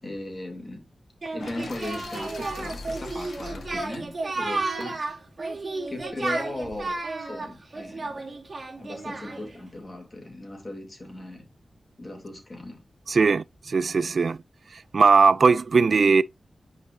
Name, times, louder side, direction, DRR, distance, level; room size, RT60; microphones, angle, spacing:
voice 1, 0.0-0.9 1.3-5.0 5.9-8.3 8.8-11.5 12.0-12.8, left 2 dB, 30° left, 2.9 m, -38 dB
Singing, 1.2-9.5, right 3 dB, 40° right, 2.4 m, -32 dB
sound 1, 1.4-5.4, left 3 dB, 85° left, 1.4 m, -43 dB
voice 2, 13.1-14.4 14.7-16.2, right 4 dB, 60° right, 0.3 m, -19 dB
10.0 x 4.8 x 2.7 m
wide cardioid pair, 120°, 0 cm